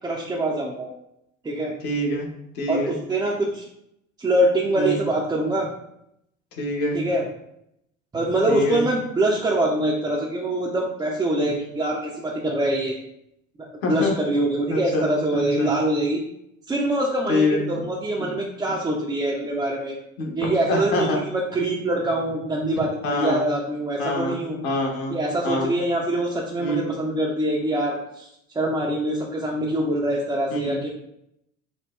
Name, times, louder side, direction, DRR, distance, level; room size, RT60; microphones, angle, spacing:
voice 1, 0.0-0.9 1.4-1.7 2.7-3.7 4.2-5.7 6.9-7.3 8.1-12.9 13.6-16.2 16.7-20.0 20.3-24.6 25.1-28.3 28.5-30.9, right 1 dB, 10° right, -3 dB, 0.3 m, -24 dB
voice 2, 1.8-2.3 2.5-2.9 4.7-5.0 6.5-7.0 8.5-8.8 13.8-14.1 14.7-15.1 15.3-15.7 17.3-17.8 18.2-18.3 20.2-20.3 20.7-21.2 23.0-23.4 24.0-25.2 25.4-25.7 26.6-26.9 30.5-30.8, left 2 dB, 65° left, 0 dB, 1.1 m, -25 dB
5.2 x 2.0 x 2.3 m, 0.78 s
hypercardioid pair, 65°, 41 cm